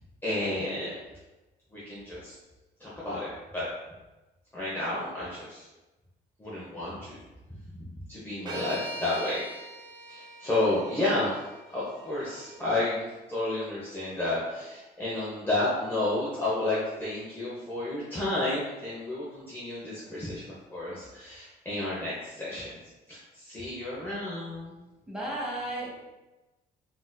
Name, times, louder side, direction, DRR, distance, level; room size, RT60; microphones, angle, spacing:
voice 1, 0.2-0.9 1.7-2.3 2.8-3.7 4.5-5.7 6.4-7.2 8.1-9.5 10.1-11.3 11.7-22.8 23.1-24.8, left 2 dB, 15° left, -8 dB, 0.7 m, -31 dB
sound 1, 8.5-12.6, right 1 dB, 25° right, 0.4 m, -42 dB
voice 2, 25.1-26.1, right 1 dB, 5° right, -6 dB, 1.1 m, -34 dB
3.8 x 2.6 x 2.2 m, 1.1 s
cardioid pair, 110°, 17 cm